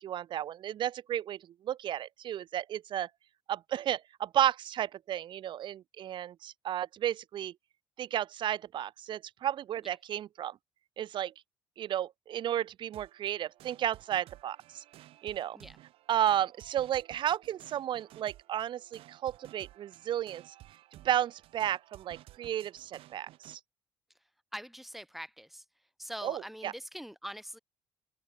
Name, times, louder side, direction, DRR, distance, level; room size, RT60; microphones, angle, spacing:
voice 1, 0.0-1.4 1.6-3.1 3.5-7.5 8.0-10.6 11.0-11.3 11.8-14.8 15.2-15.6 16.1-20.4 21.0-23.6 26.2-26.7, right 11 dB, 50° right, 0.7 m, -33 dB
sound 1, 12.9-23.6, right 15 dB, 70° right, 6.5 m, -55 dB
voice 2, 24.5-25.6 26.0-27.6, equal, ahead, 6.1 m, -43 dB
open air
hypercardioid pair, 60°, 10 cm